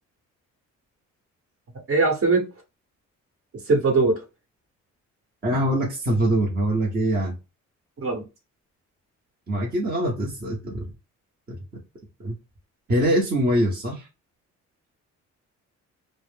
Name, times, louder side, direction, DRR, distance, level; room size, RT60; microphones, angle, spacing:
voice 1, 1.9-2.5 3.5-4.2 8.0-8.2, right 3 dB, 50° right, 1.1 m, -21 dB
voice 2, 5.4-7.4 9.5-10.9 11.5-11.6 12.2-12.4 12.9-14.1, right 1 dB, 30° right, 0.8 m, -23 dB
2.4 x 2.0 x 3.3 m
cardioid pair, 90°, 30 cm